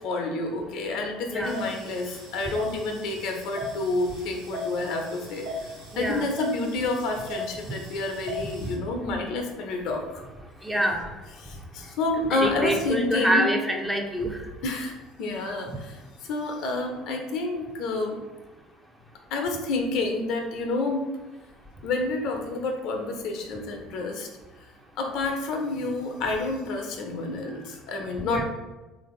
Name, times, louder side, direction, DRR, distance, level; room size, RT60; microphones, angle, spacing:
voice 1, 0.0-10.2 11.4-13.5 14.6-18.2 19.3-21.0 21.8-24.3 25.0-28.4, left 3 dB, 65° left, 3 dB, 0.6 m, -29 dB
sound 1, 1.4-8.7, left 1 dB, 90° right, 0.8 m, -38 dB
voice 2, 5.9-6.3 10.6-11.1 12.3-14.4 28.3-28.4, right 1 dB, 5° right, 2 dB, 0.6 m, -26 dB
3.4 x 2.6 x 3.1 m, 1.1 s
hypercardioid pair, 70°, 0 cm